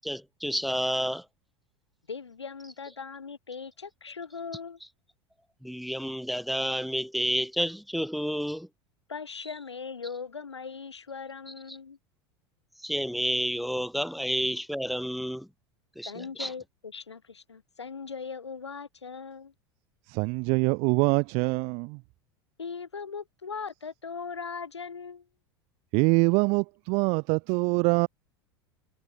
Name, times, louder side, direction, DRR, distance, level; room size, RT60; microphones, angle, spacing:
voice 1, 0.0-1.2 5.6-8.7 11.7-11.8 12.8-15.5 16.0-16.5, equal, ahead, 2.8 m, -30 dB
voice 2, 2.1-4.8 9.1-12.0 16.1-19.5 22.6-25.3, left 5 dB, 80° left, 5.6 m, -39 dB
voice 3, 20.1-22.0 25.9-28.1, right 31 dB, 50° right, 1.9 m, -24 dB
figure-of-eight pair, 80°, 14 cm